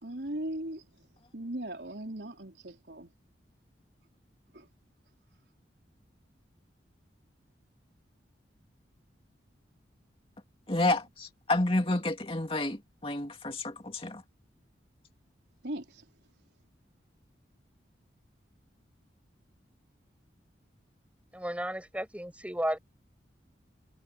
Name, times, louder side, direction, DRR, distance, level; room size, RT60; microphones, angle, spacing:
voice 1, 0.0-3.1 4.5-4.7 15.6-16.1, right 1 dB, 65° right, 4.1 m, -39 dB
voice 2, 10.7-14.2, left 2 dB, 30° left, 2.6 m, -30 dB
voice 3, 21.3-22.8, equal, 5° right, 7.4 m, -33 dB
head